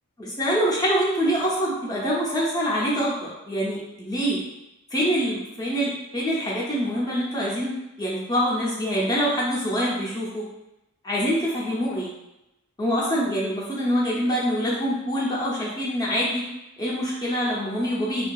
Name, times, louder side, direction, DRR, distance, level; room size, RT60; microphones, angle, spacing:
voice 1, 0.2-4.4 4.9-7.7 8.0-10.4 11.0-12.1 12.8-16.5 16.8-18.3, equal, 20° left, -5 dB, 0.5 m, -25 dB
2.6 x 2.3 x 2.3 m, 0.92 s
head